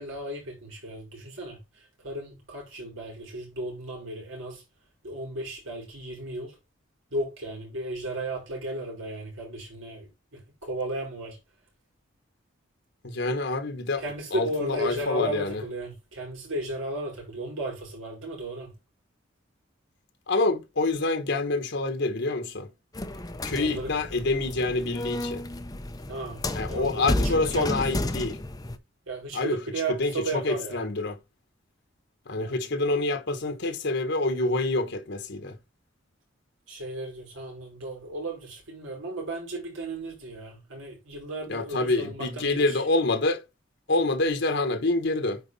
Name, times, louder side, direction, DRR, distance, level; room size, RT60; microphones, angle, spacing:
voice 1, 0.0-4.6 5.0-6.6 7.1-11.4 14.0-18.7 23.6-23.9 26.1-28.0 29.1-30.9 32.3-32.6 36.7-42.8, right 1 dB, 80° right, 5.3 m, -35 dB
voice 2, 13.0-14.0 14.3-15.6 20.3-22.7 23.4-25.4 26.5-28.4 29.3-29.6 29.9-31.2 32.3-35.6 41.5-43.4 43.9-45.4, left 2 dB, 60° left, 1.2 m, -27 dB
sound 1, 22.9-28.8, left 1 dB, 20° left, 0.7 m, -32 dB
9.5 x 4.5 x 4.1 m
head